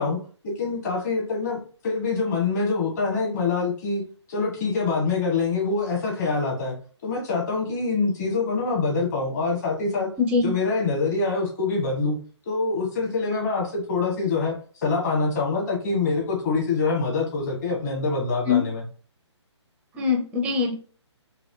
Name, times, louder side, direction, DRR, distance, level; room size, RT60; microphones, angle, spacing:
voice 1, 0.0-4.0 4.3-6.7 7.0-10.1 10.4-12.2 12.4-18.8, left 4 dB, 35° left, -2 dB, 1.7 m, -25 dB
voice 2, 10.2-10.5 18.5-18.6 19.9-20.7, left 5 dB, 10° right, 2 dB, 0.5 m, -22 dB
4.0 x 3.0 x 2.8 m, 0.40 s
figure-of-eight pair, 140°, 15 cm